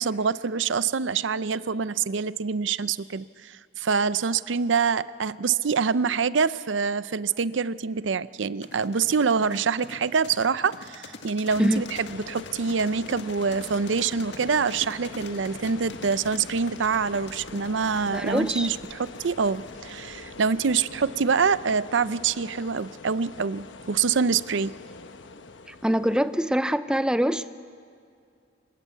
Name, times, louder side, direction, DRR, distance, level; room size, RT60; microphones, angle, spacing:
voice 1, 0.0-24.7, right 5 dB, 90° right, 16 dB, 0.6 m, -25 dB
sound 1, 8.6-20.1, left 3 dB, 70° left, 1.8 m, -43 dB
sound 2, 11.5-26.5, left 3 dB, 85° left, 1.1 m, -43 dB
voice 2, 18.1-18.7 25.7-27.5, equal, 5° right, 12 dB, 0.5 m, -24 dB
26.5 x 20.0 x 8.3 m, 2.4 s
head